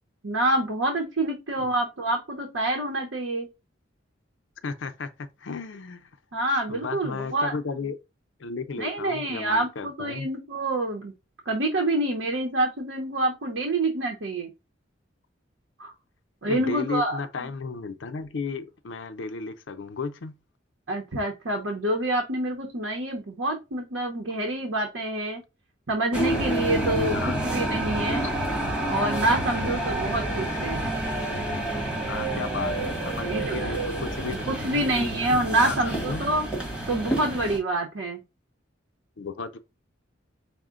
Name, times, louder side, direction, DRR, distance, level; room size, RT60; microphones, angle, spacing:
voice 1, 0.2-3.5 6.3-7.5 8.8-11.1 11.5-14.5 15.8-15.9 16.4-17.5 20.9-25.4 25.9-27.2 27.4-28.3 28.8-30.8 33.3-33.8 34.5-36.4 36.9-38.2, right 1 dB, 85° right, 0.9 m, -27 dB
voice 2, 4.6-6.1 6.7-8.0 8.4-10.3 16.5-20.3 27.0-27.5 28.2-28.3 32.1-34.9 35.5-36.3 39.2-39.6, left 4 dB, 70° left, 0.5 m, -34 dB
sound 1, 26.1-37.6, right 1 dB, 5° right, 1.2 m, -29 dB
4.8 x 2.1 x 3.7 m
head